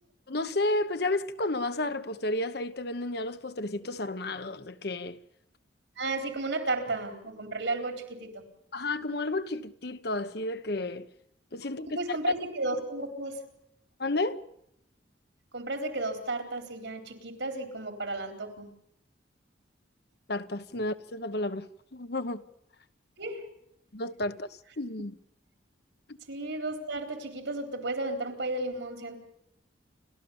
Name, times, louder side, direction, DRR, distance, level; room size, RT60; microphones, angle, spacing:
voice 1, 0.3-5.2 8.7-11.1 11.5-12.2 14.0-14.4 20.3-21.7 21.9-22.4 23.9-24.5 24.8-25.1 26.1-26.2, left 2 dB, 55° left, 1.0 m, -32 dB
voice 2, 6.0-8.4 11.8-13.4 15.5-18.7 23.2-23.4 26.3-29.2, right 2 dB, 75° right, 4.0 m, -33 dB
29.0 x 13.0 x 7.1 m
head